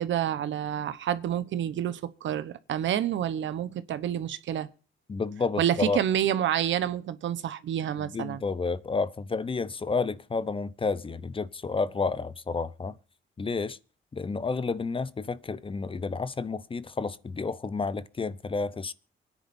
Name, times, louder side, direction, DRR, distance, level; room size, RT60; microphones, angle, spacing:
voice 1, 0.0-4.7 5.6-8.4, right 10 dB, 70° right, 1.0 m, -28 dB
voice 2, 5.1-6.0 8.0-13.0 13.4-13.8 14.1-18.9, left 4 dB, 25° left, 0.7 m, -30 dB
24.5 x 10.0 x 2.7 m
cardioid pair, 90°, 20 cm